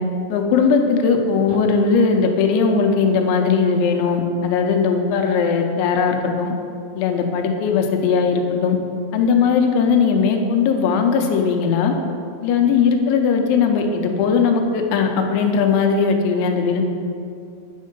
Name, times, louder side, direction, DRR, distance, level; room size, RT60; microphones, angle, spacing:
voice 1, 0.3-6.5 6.9-8.8 9.1-11.9 12.4-16.8, left 5 dB, 80° left, 4 dB, 3.0 m, -18 dB
9.3 x 5.4 x 5.1 m, 2.5 s
omnidirectional pair, 5.3 m